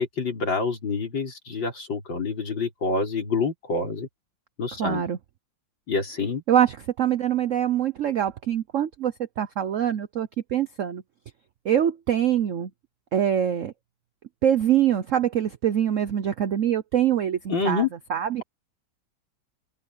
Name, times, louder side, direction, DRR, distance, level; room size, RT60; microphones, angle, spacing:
voice 1, 0.0-4.1 4.6-5.0 5.9-6.4 17.5-17.9, left 4 dB, 85° left, 5.1 m, -27 dB
voice 2, 4.8-5.2 6.5-11.0 11.6-12.7 13.1-13.7 14.4-18.4, right 10 dB, 55° right, 0.9 m, -24 dB
open air
omnidirectional pair, 2.0 m